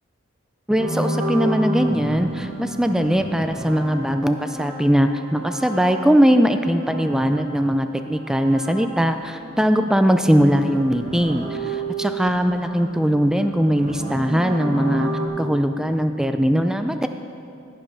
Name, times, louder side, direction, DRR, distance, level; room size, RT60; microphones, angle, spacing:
voice 1, 0.7-15.1 15.4-17.1, equal, 5° right, 8 dB, 0.3 m, -20 dB
sound 1, 0.8-9.4 9.7-15.3, right 1 dB, 35° right, 1.3 m, -31 dB
15.5 x 5.3 x 6.1 m, 2.6 s
head